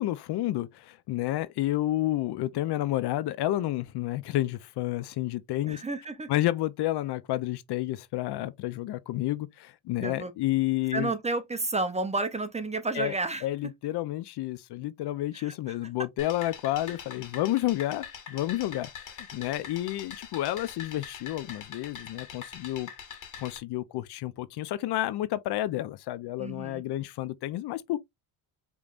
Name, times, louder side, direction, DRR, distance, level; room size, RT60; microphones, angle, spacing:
voice 1, 0.0-5.8 6.3-11.1 12.9-13.1 13.4-22.9 23.4-28.0, left 15 dB, 60° left, 0.5 m, -30 dB
voice 2, 5.7-6.3 10.0-10.3 10.9-13.5 15.3-15.5 26.4-26.8, right 3 dB, 15° right, 0.6 m, -31 dB
sound 1, 16.2-23.6, left 7 dB, 40° left, 1.8 m, -43 dB
5.2 x 3.1 x 2.4 m
cardioid pair, 105°, 46 cm